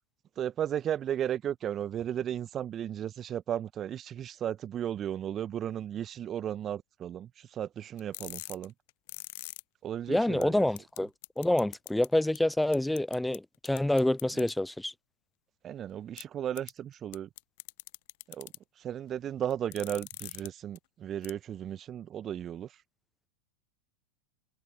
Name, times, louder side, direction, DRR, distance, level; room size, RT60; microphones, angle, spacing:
voice 1, 0.4-8.7 9.8-10.7 14.3-14.5 15.6-17.3 18.3-18.5 18.8-22.7, right 10 dB, 25° right, 1.4 m, -35 dB
sound 1, 8.0-9.6 10.1-10.2 10.4-10.5 10.8-11.0 11.2-12.1 12.3-12.4 12.7-13.4 13.6-14.5 16.2-16.3 16.5-16.7 17.1-18.6 19.5-20.5 20.7-20.8 21.2-21.3, left 24 dB, 50° left, 0.9 m, -42 dB
voice 2, 10.1-11.1 11.4-14.9, left 1 dB, 5° left, 0.3 m, -27 dB
figure-of-eight pair, 90°, 0 cm